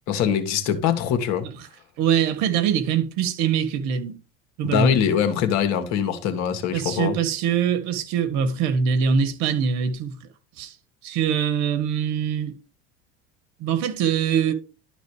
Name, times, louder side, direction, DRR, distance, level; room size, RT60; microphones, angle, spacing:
voice 1, 0.1-1.5 4.6-7.2, left 8 dB, 60° left, 1.8 m, -23 dB
voice 2, 2.0-4.2 4.6-5.0 6.7-10.1 10.6-10.7 11.0-12.6 13.6-14.5, right 7 dB, 65° right, 1.8 m, -23 dB
11.5 x 4.1 x 4.9 m
hypercardioid pair, 85°, 31 cm